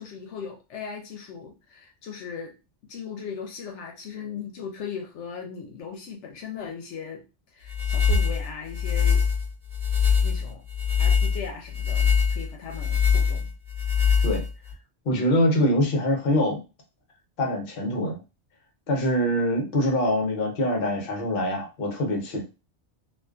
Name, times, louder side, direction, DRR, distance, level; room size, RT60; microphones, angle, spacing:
voice 1, 0.0-2.5 2.8-7.2 7.5-9.2 10.2-10.6 11.0-13.5, left 6 dB, 85° left, 1 dB, 0.9 m, -38 dB
sound 1, 7.7-14.7, left 6 dB, 65° right, 1.1 m, -23 dB
voice 2, 15.1-16.6 17.4-18.2 18.9-22.4, left 1 dB, 55° left, 1 dB, 0.9 m, -24 dB
2.4 x 2.4 x 2.3 m, 0.29 s
omnidirectional pair, 1.2 m